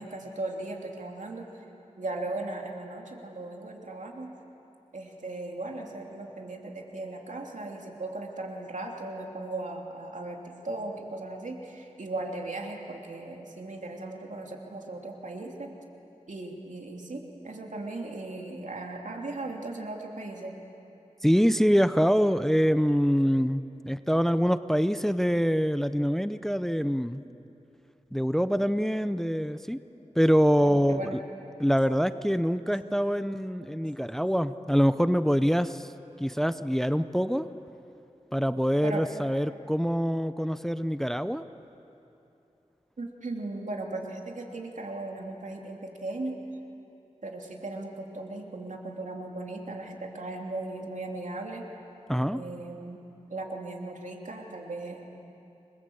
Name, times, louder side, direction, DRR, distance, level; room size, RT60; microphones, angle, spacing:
voice 1, 0.0-1.5 2.0-4.3 4.9-15.7 16.3-20.6 21.9-22.0 30.6-31.2 32.9-33.1 33.3-33.7 38.8-39.1 43.0-46.4 47.2-51.6 52.3-53.0 53.3-55.1, right 2 dB, 80° right, 1 dB, 3.0 m, -37 dB
voice 2, 21.2-27.2 28.1-29.8 30.2-31.2 31.6-35.9 36.2-37.5 38.3-41.4 52.1-52.4, equal, 5° left, 12 dB, 0.6 m, -25 dB
29.0 x 22.0 x 8.0 m, 2.9 s
wide cardioid pair, 75°, 13 cm